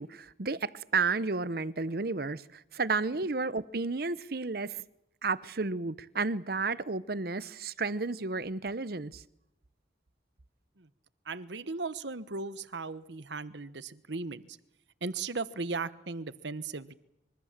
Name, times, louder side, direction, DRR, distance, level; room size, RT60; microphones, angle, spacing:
voice 1, 0.0-4.8 5.2-9.2, right 4 dB, 50° right, 0.8 m, -32 dB
voice 2, 11.2-14.6 15.0-16.9, right 3 dB, 70° right, 1.2 m, -37 dB
26.0 x 23.5 x 7.4 m
head